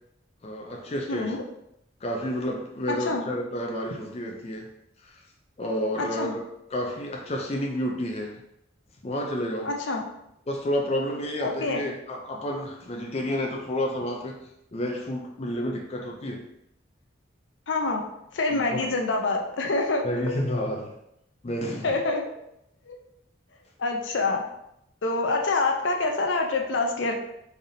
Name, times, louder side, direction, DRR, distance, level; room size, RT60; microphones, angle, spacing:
voice 1, 0.4-1.4 2.0-4.7 5.0-5.1 5.6-6.4 6.7-8.4 9.0-9.7 10.5-14.4 14.7-16.4 18.5-18.9 20.0-20.9 21.4-22.0, equal, 35° left, 1 dB, 0.4 m, -30 dB
voice 2, 1.1-1.4 2.9-3.3 6.0-6.3 9.6-10.1 11.4-11.9 17.7-18.1 18.3-20.0 21.8-22.2 22.9-23.0 23.8-24.4 25.0-27.2, left 3 dB, 80° left, 2 dB, 0.6 m, -26 dB
3.9 x 3.4 x 2.7 m, 0.80 s
head